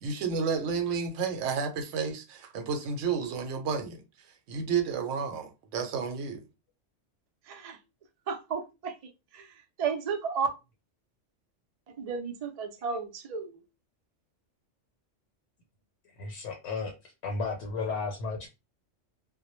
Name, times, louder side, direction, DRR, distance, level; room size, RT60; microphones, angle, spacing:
voice 1, 0.0-4.0 4.5-6.4, right 5 dB, 85° right, 0.9 m, -31 dB
voice 2, 7.4-7.8 8.3-10.5 11.9-13.6, right 5 dB, 60° right, 0.4 m, -34 dB
voice 3, 16.2-16.9 17.2-18.5, left 4 dB, 75° left, 0.9 m, -33 dB
2.1 x 2.1 x 2.9 m
omnidirectional pair, 1.2 m